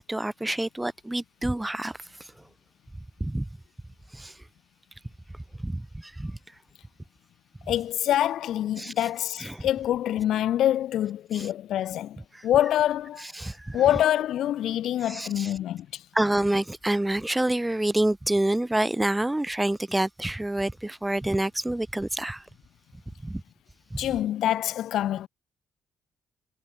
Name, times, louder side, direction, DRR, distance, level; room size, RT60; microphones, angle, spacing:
voice 1, 0.0-2.0 3.2-3.5 4.1-4.3 5.6-6.4 8.8-8.9 9.4-9.7 11.3-11.5 12.3-12.4 13.4-13.8 15.1-15.5 16.1-22.4 23.2-23.4 23.9-24.1, right 1 dB, 10° right, 2.6 m, -27 dB
voice 2, 7.7-13.2 13.7-16.0 24.0-25.3, left 12 dB, 75° left, 3.9 m, -25 dB
cardioid pair, 90°, 0 cm